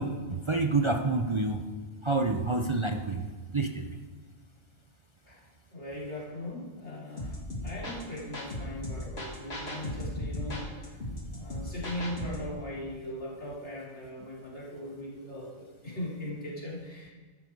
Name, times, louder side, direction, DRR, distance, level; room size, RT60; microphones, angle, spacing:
voice 1, 0.0-1.6 2.0-4.0 11.3-11.4, right 3 dB, 35° right, 4 dB, 0.6 m, -28 dB
voice 2, 5.7-10.7 11.3-17.1, left 1 dB, 80° left, -7 dB, 4.2 m, -39 dB
sound 1, 7.2-12.5, left 1 dB, 65° left, 2.4 m, -37 dB
14.0 x 11.5 x 4.7 m, 1.4 s
omnidirectional pair, 1.1 m